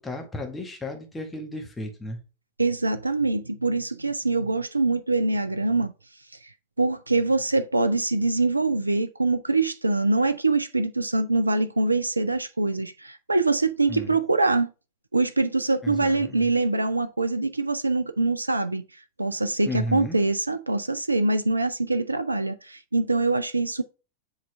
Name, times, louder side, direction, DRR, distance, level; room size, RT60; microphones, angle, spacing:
voice 1, 0.0-2.2 13.9-14.1 15.8-16.5 19.6-20.2, left 1 dB, 10° left, 1.7 m, -33 dB
voice 2, 2.6-5.9 6.4-14.7 15.1-23.8, right 3 dB, 85° right, 0.4 m, -24 dB
7.6 x 4.0 x 3.3 m
figure-of-eight pair, 90°, 0 cm